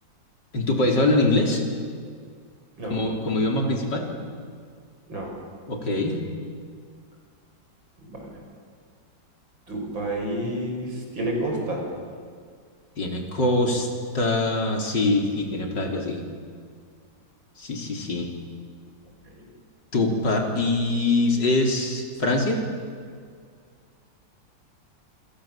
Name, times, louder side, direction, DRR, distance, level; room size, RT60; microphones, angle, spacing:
voice 1, 0.5-1.6 2.9-4.1 5.7-6.2 13.0-13.9 14.1-16.3 17.6-18.3 19.9-22.6, left 2 dB, 65° left, 2 dB, 4.1 m, -23 dB
voice 2, 8.0-8.4 9.7-11.9 19.4-19.5, right 1 dB, 80° right, 0 dB, 7.0 m, -30 dB
28.0 x 27.0 x 7.5 m, 2.1 s
omnidirectional pair, 2.1 m